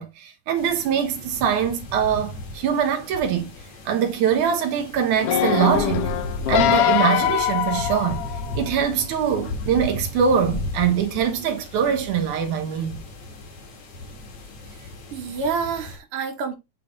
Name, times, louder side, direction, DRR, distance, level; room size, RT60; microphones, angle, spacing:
voice 1, 0.0-3.5 3.9-6.1 6.5-8.2 8.6-13.0, right 8 dB, 85° right, 2.6 m, -23 dB
sound 1, 0.6-16.0, left 2 dB, 70° left, 2.9 m, -35 dB
sound 2, 5.2-8.7 9.3-9.4, left 11 dB, 90° left, 1.3 m, -22 dB
voice 2, 14.8-16.6, right 5 dB, 55° right, 2.1 m, -28 dB
8.5 x 3.4 x 3.9 m
omnidirectional pair, 3.4 m